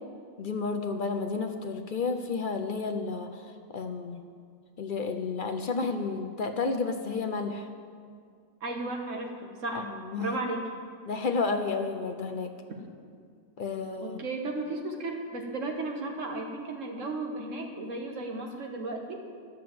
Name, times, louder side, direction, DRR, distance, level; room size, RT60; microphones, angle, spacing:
voice 1, 0.4-3.5 3.7-4.2 4.8-7.7 9.7-10.4 11.1-12.5 13.6-14.2, left 4 dB, 55° left, 6 dB, 0.5 m, -31 dB
voice 2, 8.6-9.9 10.2-10.7 12.7-12.8 14.0-19.2, right 2 dB, 60° right, 2 dB, 1.6 m, -34 dB
11.0 x 7.1 x 7.7 m, 2.2 s
omnidirectional pair, 1.5 m